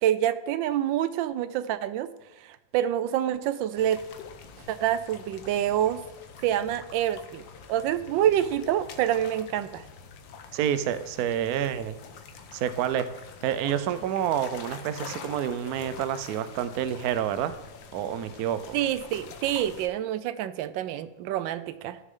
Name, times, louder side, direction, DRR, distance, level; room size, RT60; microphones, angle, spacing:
voice 1, 0.0-2.1 2.4-4.0 4.7-6.0 6.4-7.4 7.7-9.8 18.7-22.0, right 11 dB, 85° right, 14 dB, 1.3 m, -27 dB
sound 1, 3.8-19.9, left 6 dB, 85° left, 1.6 m, -46 dB
voice 2, 10.5-12.0 12.5-13.1 13.4-17.5 17.9-18.8, right 10 dB, 70° right, 12 dB, 0.9 m, -28 dB
14.5 x 6.6 x 3.7 m, 1.0 s
omnidirectional pair, 2.0 m